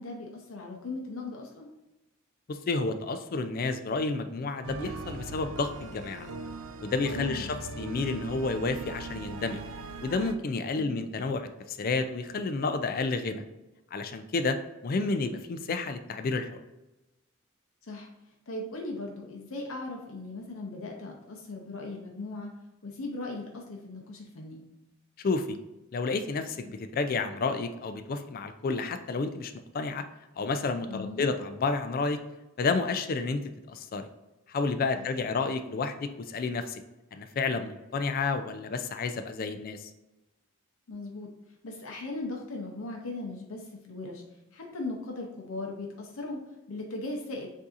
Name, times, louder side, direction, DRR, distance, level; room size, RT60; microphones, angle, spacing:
voice 1, 0.0-1.7 7.1-7.6 10.8-11.0 17.8-18.1 18.5-22.5 22.8-24.6 30.9-31.3 34.9-35.1 40.9-41.3 41.6-44.2 44.5-46.4 46.7-47.5, left 2 dB, 75° left, 1 dB, 0.7 m, -38 dB
voice 2, 2.5-6.3 6.8-9.6 10.0-13.4 13.9-16.6 25.2-25.6 25.9-30.1 30.4-32.2 32.6-34.1 34.5-36.8 37.1-39.9, left 3 dB, 45° left, 9 dB, 0.3 m, -30 dB
sound 1, 4.6-10.3, right 3 dB, 75° right, 0.5 m, -40 dB
7.2 x 2.7 x 2.5 m, 1.0 s
head